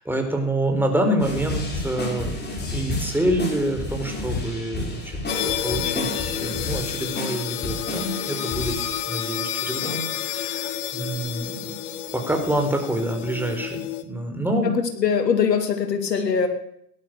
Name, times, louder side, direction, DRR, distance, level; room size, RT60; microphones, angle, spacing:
voice 1, 0.0-5.1 5.4-8.7 9.1-11.7 12.1-14.7, right 1 dB, 5° right, 3 dB, 4.6 m, -27 dB
sound 1, 1.2-9.4 9.8-10.0, left 2 dB, 20° left, 5.9 m, -31 dB
sound 2, 5.3-14.0, left 11 dB, 70° left, 1.8 m, -30 dB
voice 2, 14.6-16.5, left 6 dB, 90° left, 6 dB, 2.8 m, -22 dB
17.5 x 12.0 x 6.8 m, 0.72 s
hypercardioid pair, 90°, 48 cm